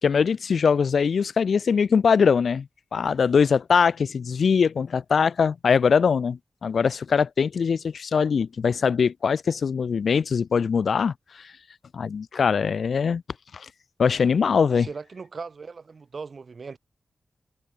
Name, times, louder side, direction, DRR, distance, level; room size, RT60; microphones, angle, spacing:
voice 1, 0.0-2.7 2.9-11.5 11.9-13.2 13.5-13.7 14.0-14.9, left 6 dB, 80° left, 2.2 m, -22 dB
voice 2, 14.8-16.8, right 4 dB, 65° right, 3.4 m, -38 dB
cardioid pair, 45°, 0 cm